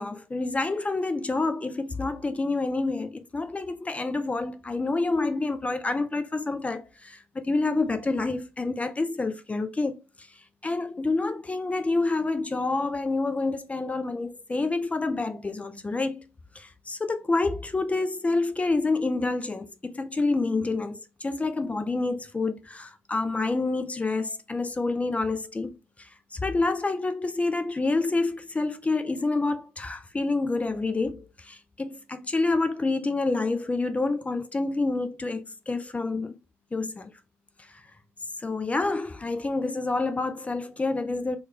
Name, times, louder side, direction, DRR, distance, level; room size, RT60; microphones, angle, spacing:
voice 1, 0.0-10.3 10.6-16.2 16.5-25.7 26.0-36.4 36.7-37.1 37.7-37.8 38.4-41.4, left 3 dB, 20° left, 0.5 m, -28 dB
3.1 x 2.4 x 3.5 m
figure-of-eight pair, 50°, 7 cm